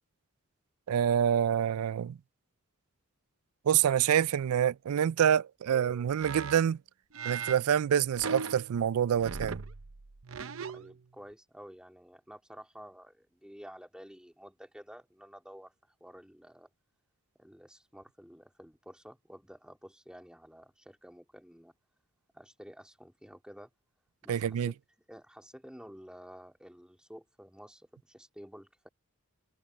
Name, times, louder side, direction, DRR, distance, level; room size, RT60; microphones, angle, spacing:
voice 1, 0.9-2.2 3.7-6.8 7.3-9.6 24.3-24.7, right 9 dB, 80° right, 0.4 m, -27 dB
sound 1, 5.7-6.6 7.1-7.6 8.1-8.9 9.2-11.0, right 5 dB, 65° right, 0.8 m, -39 dB
voice 2, 10.7-15.7 16.0-16.7 17.4-21.7 22.3-23.7 24.2-24.8 25.1-28.9, equal, 5° right, 3.4 m, -51 dB
head